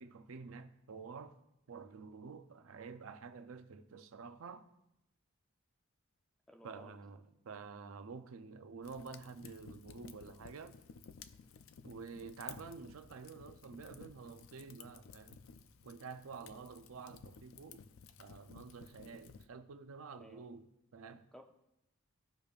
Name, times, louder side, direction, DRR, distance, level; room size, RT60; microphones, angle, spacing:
voice 1, 0.0-1.4 1.7-4.7 6.6-10.8 11.8-15.4 15.8-17.9 18.2-21.3, right 5 dB, 75° right, 0.5 m, -49 dB
voice 2, 6.5-7.0 20.2-20.5 21.3-21.4, equal, 5° left, 0.5 m, -56 dB
Fire, 8.8-19.5, left 6 dB, 70° left, 0.4 m, -55 dB
Bass guitar, 14.1-20.4, left 1 dB, 30° left, 1.2 m, -74 dB
15.0 x 5.1 x 2.4 m
head